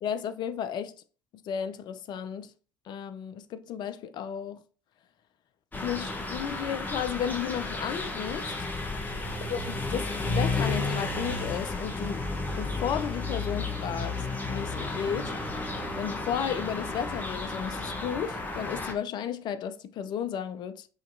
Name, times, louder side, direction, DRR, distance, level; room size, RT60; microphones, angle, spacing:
voice 1, 0.0-0.9 1.3-2.5 2.9-4.6 5.8-8.5 9.5-12.2 12.6-15.3 16.0-20.9, left 8 dB, 50° left, 0.5 m, -33 dB
sound 1, 5.7-18.9, left 3 dB, 20° left, 0.9 m, -32 dB
5.1 x 2.8 x 2.6 m
figure-of-eight pair, 60°, 10 cm